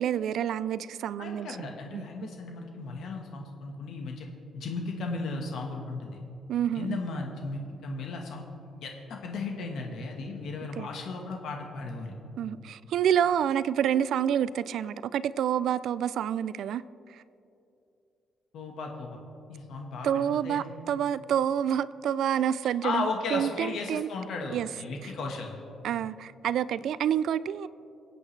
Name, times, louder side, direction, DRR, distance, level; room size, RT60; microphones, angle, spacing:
voice 1, 0.0-1.7 1.9-2.0 6.5-7.0 10.8-10.9 12.4-16.8 20.0-24.1 24.5-24.7 25.8-27.7, right 9 dB, 65° right, 17 dB, 0.3 m, -28 dB
voice 2, 1.2-4.3 4.5-6.2 6.7-8.4 8.8-12.1 18.5-19.2 19.5-20.6 22.8-25.6, left 3 dB, 65° left, 2 dB, 1.3 m, -35 dB
26.0 x 8.7 x 3.2 m, 2.7 s
cardioid pair, 175°, 0 cm